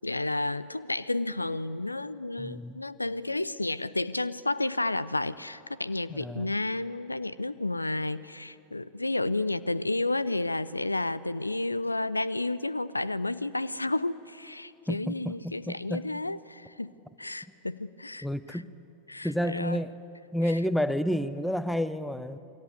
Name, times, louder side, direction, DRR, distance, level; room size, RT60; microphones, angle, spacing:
voice 1, 0.0-16.9 17.2-18.6 19.1-19.8 20.5-20.6, left 2 dB, 85° left, 18 dB, 0.6 m, -31 dB
voice 2, 2.4-2.8 6.1-6.5 14.9-16.1 18.2-18.7 19.2-20.0 20.3-22.4, equal, ahead, 14 dB, 0.9 m, -30 dB
28.0 x 22.5 x 8.3 m, 2.8 s
figure-of-eight pair, 90°, 0 cm